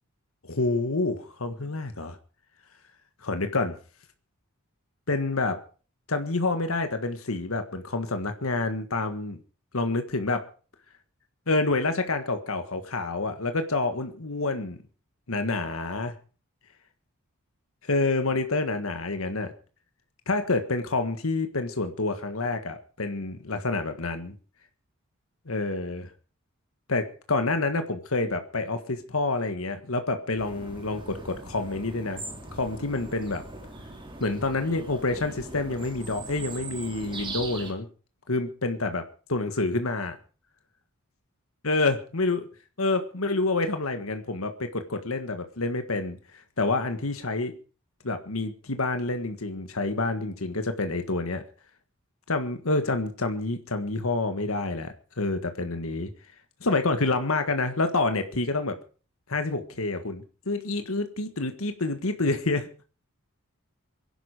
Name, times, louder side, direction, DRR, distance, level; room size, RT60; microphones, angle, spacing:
voice 1, 0.4-2.1 3.2-3.8 5.1-5.6 6.1-9.4 9.7-10.4 11.5-14.8 15.3-16.1 17.8-19.5 20.3-24.3 25.5-26.1 26.9-32.2 32.5-33.4 34.2-37.9 38.3-39.0 39.3-40.2 41.6-42.5 42.8-46.2 46.6-47.5 48.0-51.4 52.3-56.1 56.6-58.8 59.3-62.7, left 3 dB, 80° left, 8 dB, 1.6 m, -28 dB
sound 1, 30.4-37.7, right 2 dB, 25° right, 3.1 m, -40 dB
24.0 x 11.0 x 5.0 m, 0.39 s
head